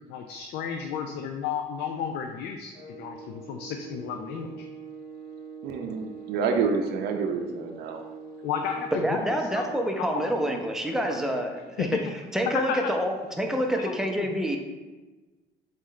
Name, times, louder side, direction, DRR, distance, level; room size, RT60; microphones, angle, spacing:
voice 1, 0.1-3.2 3.5-4.7 8.4-9.7 10.0-10.1 11.8-11.9 13.7-14.3, left 7 dB, 80° left, 4 dB, 0.4 m, -33 dB
sound 1, 2.7-9.8, right 5 dB, 60° left, 0.9 m, -43 dB
voice 2, 5.6-8.0, right 5 dB, 75° right, 3 dB, 0.5 m, -28 dB
voice 3, 8.9-11.9 12.3-14.6, equal, 5° right, 2 dB, 0.5 m, -27 dB
4.0 x 3.1 x 3.8 m, 1.2 s
cardioid pair, 110°, 17 cm